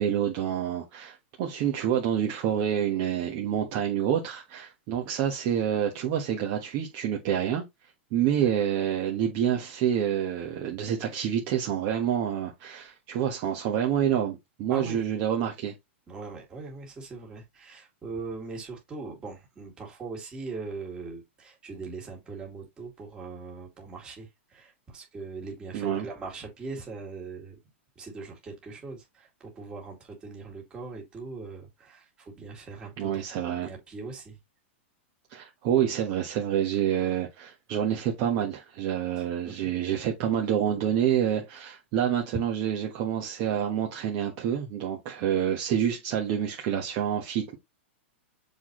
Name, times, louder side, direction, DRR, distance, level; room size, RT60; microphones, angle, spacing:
voice 1, 0.0-7.6 8.1-15.7 25.7-26.1 33.0-33.7 35.3-47.6, right 9 dB, 35° right, 1.3 m, -27 dB
voice 2, 14.7-15.1 16.1-27.6 28.0-33.1 33.4-34.4 39.2-39.7 42.3-42.4, right 4 dB, 15° right, 2.4 m, -40 dB
7.1 x 4.2 x 3.1 m
supercardioid pair, 170°, 7 cm